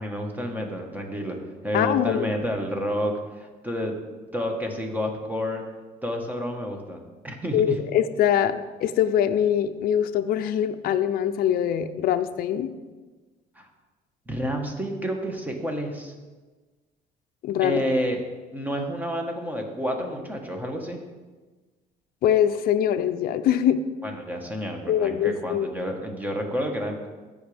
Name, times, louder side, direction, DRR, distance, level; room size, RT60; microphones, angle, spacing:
voice 1, 0.0-1.4 1.6-4.0 4.3-5.6 6.0-7.0 7.2-7.8 13.5-13.7 14.3-16.1 17.6-18.2 18.5-21.0 24.0-27.0, equal, 10° right, 2 dB, 1.4 m, -29 dB
voice 2, 1.7-2.3 7.5-8.6 8.8-12.7 17.4-17.8 22.2-23.8 24.9-25.7, left 10 dB, 65° left, 9 dB, 0.5 m, -23 dB
14.5 x 5.1 x 3.4 m, 1.3 s
cardioid pair, 110°, 17 cm